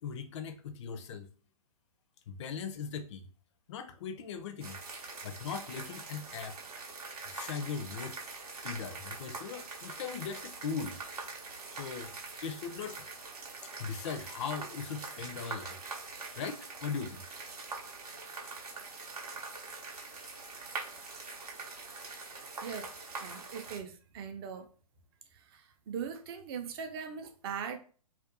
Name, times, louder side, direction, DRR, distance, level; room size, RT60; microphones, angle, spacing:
voice 1, 0.0-1.3 2.3-3.3 3.7-4.8 5.2-6.6 7.3-8.2 8.6-11.0 11.7-12.2 12.4-13.0 13.6-15.8 16.4-17.2, left 6 dB, 50° left, 0.4 m, -39 dB
sound 1, 4.6-23.8, right 4 dB, 80° right, 0.7 m, -44 dB
voice 2, 23.2-24.7 25.3-27.8, right 7 dB, 40° right, 0.5 m, -40 dB
2.4 x 2.2 x 2.5 m
hypercardioid pair, 125°, 20 cm